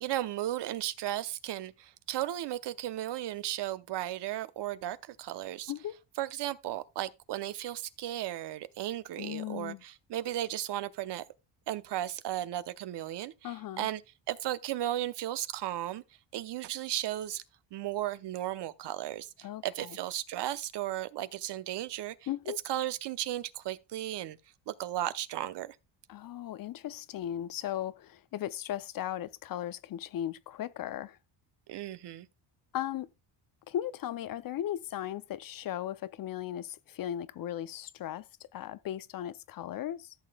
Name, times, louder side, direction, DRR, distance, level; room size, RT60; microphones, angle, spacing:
voice 1, 0.0-5.7 6.2-11.2 11.7-14.0 14.3-16.0 16.3-17.4 17.7-22.1 22.7-24.4 24.7-25.8 31.7-32.3, right 13 dB, 65° right, 0.8 m, -35 dB
voice 2, 5.7-6.0 9.2-9.8 13.4-13.9 19.4-20.0 22.3-22.6 26.1-31.2 32.7-33.1 33.7-38.3 38.5-40.1, left 11 dB, 50° left, 0.5 m, -37 dB
14.5 x 6.8 x 2.2 m
cardioid pair, 110°, 46 cm